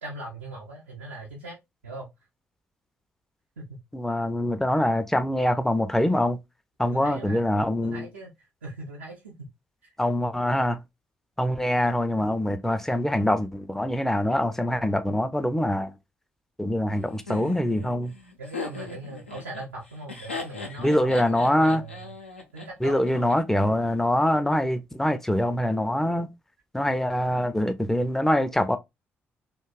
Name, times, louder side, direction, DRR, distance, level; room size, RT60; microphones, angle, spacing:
voice 1, 0.0-1.6 1.8-2.1 3.6-3.8 6.9-9.5 9.8-9.9 18.4-23.3, right 2 dB, 80° right, 0.5 m, -40 dB
voice 2, 3.9-6.4 6.8-8.1 10.0-10.8 11.4-15.9 16.6-18.1 20.8-21.8 22.8-26.3 26.7-28.8, left 1 dB, 5° left, 0.4 m, -24 dB
Laughter, 17.3-23.3, left 3 dB, 90° left, 0.4 m, -38 dB
2.7 x 2.0 x 2.2 m
figure-of-eight pair, 40°, 6 cm